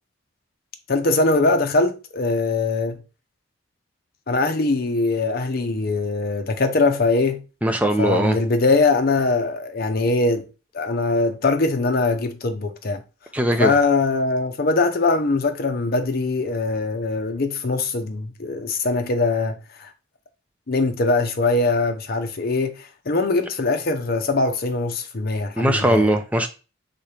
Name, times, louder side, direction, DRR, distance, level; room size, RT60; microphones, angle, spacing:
voice 1, 0.9-3.0 4.3-7.4 8.0-10.5 10.7-13.0 13.6-19.9 20.7-26.1, left 3 dB, 50° left, 0.6 m, -22 dB
voice 2, 7.6-8.4 13.3-13.7 25.6-26.5, right 1 dB, 5° right, 0.5 m, -20 dB
4.2 x 3.7 x 3.3 m
head